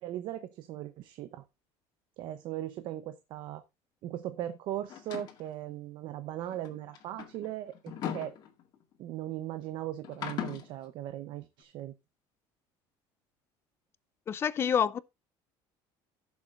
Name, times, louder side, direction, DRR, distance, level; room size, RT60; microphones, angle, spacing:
voice 1, 0.0-1.4 2.2-3.6 4.0-8.4 9.0-11.9, right 12 dB, 50° right, 0.8 m, -38 dB
sound 1, 4.9-5.5 6.5-8.9 10.0-10.7, left 9 dB, 40° left, 2.0 m, -39 dB
voice 2, 14.3-15.0, left 8 dB, 25° left, 0.4 m, -27 dB
15.5 x 7.2 x 2.5 m
cardioid pair, 175°, 10 cm